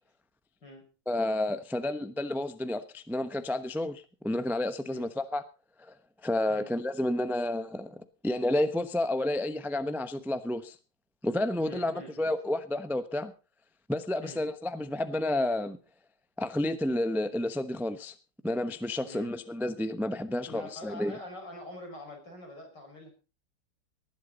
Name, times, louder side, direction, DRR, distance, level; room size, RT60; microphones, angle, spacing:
voice 1, 1.1-5.4 6.2-10.8 11.2-13.3 13.9-15.8 16.4-18.1 18.4-21.2, left 1 dB, 5° right, 11 dB, 0.3 m, -30 dB
voice 2, 11.6-12.3 14.2-14.4 19.1-19.4 20.5-23.1, left 1 dB, 65° left, 2 dB, 6.1 m, -45 dB
19.5 x 11.5 x 4.0 m, 0.33 s
omnidirectional pair, 2.0 m